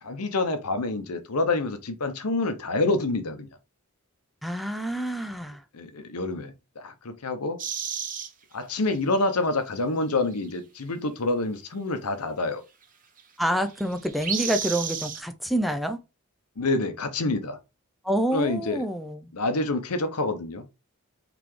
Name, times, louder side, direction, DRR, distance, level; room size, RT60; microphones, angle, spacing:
voice 1, 0.0-3.5 5.7-7.6 8.5-12.6 16.6-17.6 18.3-18.8 19.3-20.7, left 2 dB, 75° left, 0.8 m, -27 dB
voice 2, 4.4-5.6 13.4-16.0 18.0-19.3, right 1 dB, ahead, 0.3 m, -27 dB
sound 1, 7.6-8.3 9.5-9.6 10.0-10.1 10.4-10.6 13.2-13.3 13.5-15.2, right 7 dB, 40° right, 0.9 m, -32 dB
4.0 x 3.3 x 3.1 m
head